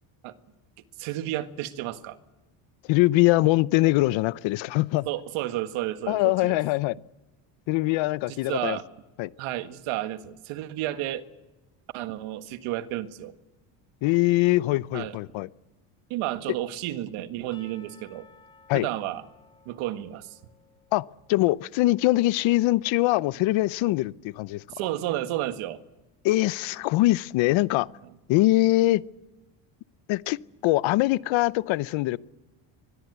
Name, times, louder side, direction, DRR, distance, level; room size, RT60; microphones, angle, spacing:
voice 1, 1.0-2.2 5.1-6.6 8.3-8.9 9.4-11.2 11.9-13.3 14.9-15.2 16.1-18.3 18.7-19.2 19.7-20.4 24.7-25.8, right 14 dB, 80° right, 1.8 m, -31 dB
voice 2, 2.9-5.1 6.1-7.0 7.7-8.8 9.2-9.3 14.0-15.5 18.7-18.9 20.9-24.6 26.2-27.9 28.3-29.0 30.1-32.2, left 18 dB, 70° left, 0.8 m, -23 dB
Percussion / Church bell, 17.5-21.4, left 4 dB, 10° left, 3.0 m, -57 dB
24.5 x 21.0 x 8.1 m
cardioid pair, 145°, 49 cm